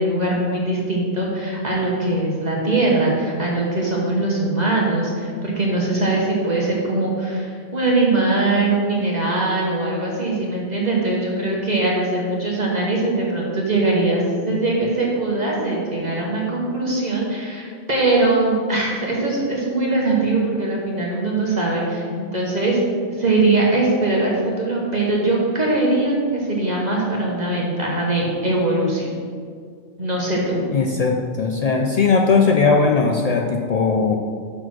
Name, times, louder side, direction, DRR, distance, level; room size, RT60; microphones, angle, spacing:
voice 1, 0.0-22.8 23.1-29.1 30.0-30.6, right 2 dB, 35° right, -3 dB, 1.2 m, -21 dB
voice 2, 30.7-34.2, left 4 dB, 80° left, 2 dB, 0.3 m, -18 dB
6.1 x 4.9 x 6.0 m, 2.1 s
omnidirectional pair, 1.3 m